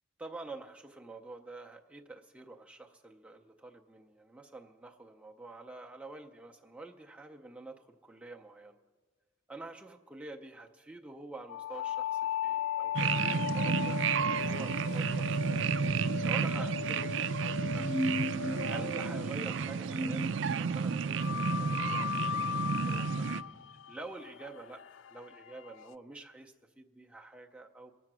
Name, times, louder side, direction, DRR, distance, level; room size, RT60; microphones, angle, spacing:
voice 1, 0.2-8.8 9.5-18.2 18.7-23.3 23.9-24.8 25.1-27.9, right 2 dB, 5° right, 2 dB, 0.5 m, -48 dB
sound 1, 11.5-20.3 21.2-25.9, left 8 dB, 75° left, 0.3 m, -37 dB
sound 2, 12.9-23.4, right 6 dB, 70° right, 0.4 m, -32 dB
sound 3, 17.6-21.1, right 1 dB, 45° right, 0.7 m, -37 dB
22.0 x 7.6 x 6.1 m, 1.4 s
head